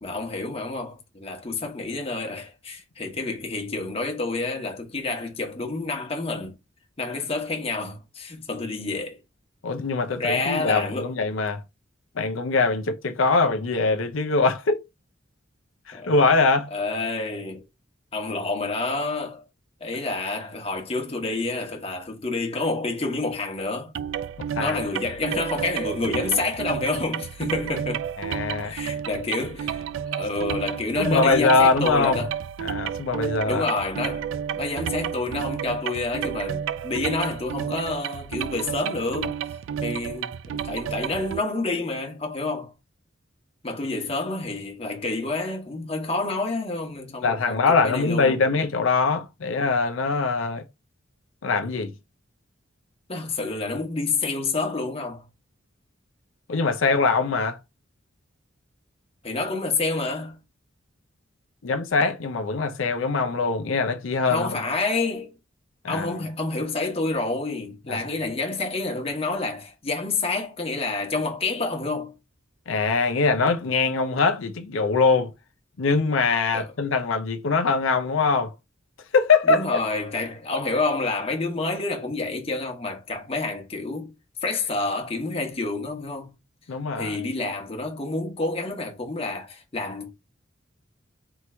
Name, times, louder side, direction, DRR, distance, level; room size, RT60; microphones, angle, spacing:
voice 1, 0.0-6.6 7.0-9.2 10.1-11.1 15.9-16.1 16.7-17.6 18.1-19.4 19.8-23.9 24.6-28.1 28.6-29.8 30.1-32.3 33.5-39.4 39.8-42.7 43.6-48.4 53.1-55.2 59.2-60.4 64.2-65.3 65.9-72.1 76.5-76.7 79.5-84.1 84.4-86.3 87.0-90.1, left 3 dB, 30° left, 1.2 m, -28 dB
voice 2, 9.6-11.6 12.2-14.8 15.9-16.7 24.4-24.8 28.2-28.7 31.0-32.2 32.6-33.7 47.2-50.6 51.4-51.9 56.5-57.6 61.6-64.5 65.8-66.2 67.9-68.0 72.7-75.3 75.8-78.5 79.1-79.8 86.7-87.2, left 4 dB, 80° left, 0.6 m, -22 dB
sound 1, 23.9-41.4, right 8 dB, 75° right, 0.3 m, -31 dB
3.6 x 3.0 x 4.3 m
head